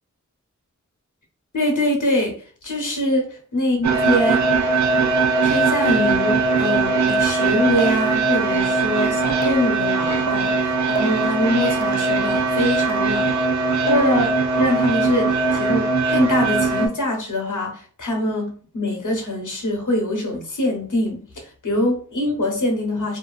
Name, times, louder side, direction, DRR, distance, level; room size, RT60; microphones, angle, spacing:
voice 1, 1.5-4.5 5.4-13.3 13.8-23.2, left 1 dB, 75° left, 0.9 m, -24 dB
sound 1, 3.8-16.9, right 4 dB, 65° right, 0.5 m, -20 dB
2.6 x 2.4 x 2.3 m
wide cardioid pair, 45°, 32 cm